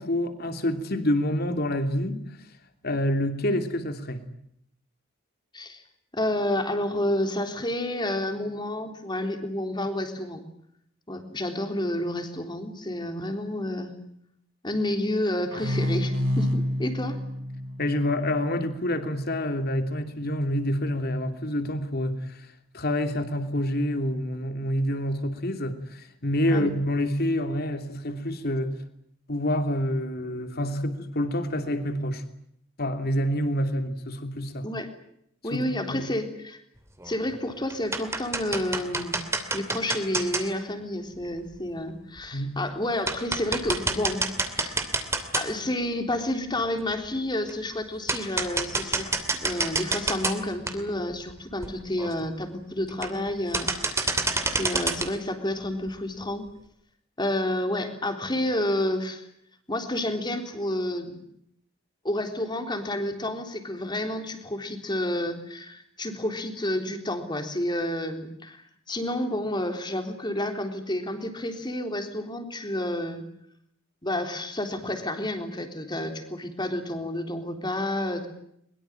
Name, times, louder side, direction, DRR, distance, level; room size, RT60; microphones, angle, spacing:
voice 1, 0.0-2.2 2.8-4.2 17.8-22.5 22.7-28.7 29.3-32.2 32.8-34.6 35.5-35.6 35.9-36.0 42.3-42.6, left 1 dB, 45° left, 7 dB, 3.0 m, -27 dB
voice 2, 6.1-10.4 11.1-14.0 14.6-17.2 26.5-26.7 34.6-34.9 35.4-36.6 37.0-39.2 39.5-44.2 44.5-44.8 45.3-49.1 49.4-54.2 54.5-56.4 57.2-59.3 59.7-61.1 62.0-73.2 74.0-78.3, left 1 dB, 20° left, 6 dB, 3.7 m, -30 dB
sound 1, 15.5-19.0, left 1 dB, 60° right, 4.8 m, -29 dB
industrial steelframe wood tapping, 37.0-37.4 37.7-40.4 41.5-41.6 42.2-42.3 42.7-42.8 43.1-45.7 46.2-46.3 47.5-47.6 48.1-50.4 50.7-50.8 51.3-51.4 51.6-51.7 52.0-52.3 52.9-53.3 53.5-55.1, right 3 dB, 15° right, 2.8 m, -28 dB
23.0 x 22.5 x 9.0 m, 0.71 s
head